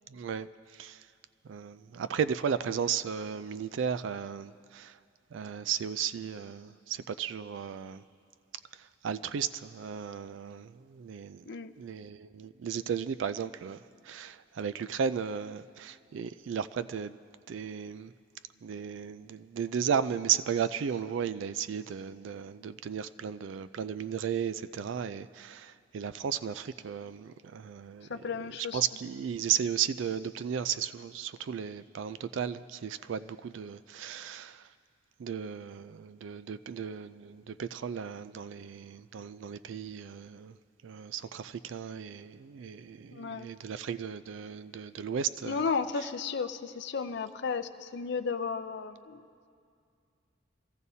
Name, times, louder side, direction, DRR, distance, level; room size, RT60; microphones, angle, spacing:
voice 1, 0.1-1.1 1.4-5.0 5.3-8.0 8.7-11.5 11.8-17.2 17.5-18.1 18.6-28.1 28.7-34.7 35.2-40.6 40.8-45.7, right 7 dB, 65° right, 14 dB, 0.3 m, -35 dB
voice 2, 11.5-11.8 28.1-28.8 43.1-43.5 45.5-49.3, left 5 dB, 60° left, 9 dB, 0.6 m, -34 dB
25.0 x 15.5 x 2.8 m, 2.3 s
head